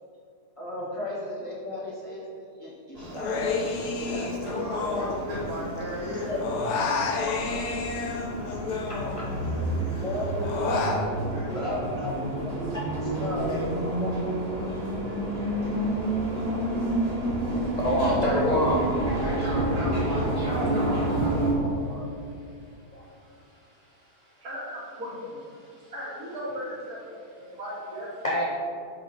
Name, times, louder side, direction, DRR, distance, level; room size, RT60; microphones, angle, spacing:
voice 1, 0.6-3.5 4.0-4.3 6.1-6.4 6.8-7.2 9.1-9.2 9.9-11.0 11.5-13.7 14.0-14.9, equal, 20° left, -8 dB, 1.9 m, -35 dB
sound 1, 2.9-21.5, right 1 dB, 25° right, 1.9 m, -29 dB
Human voice, 3.1-5.8 6.0-9.5 9.9-11.0, left 4 dB, 80° left, 1.4 m, -30 dB
voice 2, 4.1-6.4 6.9-7.6 9.0-9.2 9.4-10.0 10.4-10.6 11.3-11.8 12.4-12.5 18.3-18.4 19.2-22.0 24.4-25.4 25.9-27.0 27.4-28.1, left 1 dB, 65° right, -7 dB, 2.6 m, -37 dB
voice 3, 17.7-18.8 22.9-23.0 25.8-25.9 28.2-28.4, equal, 35° left, -4 dB, 0.8 m, -24 dB
5.7 x 5.3 x 5.5 m, 2.3 s
omnidirectional pair, 1.7 m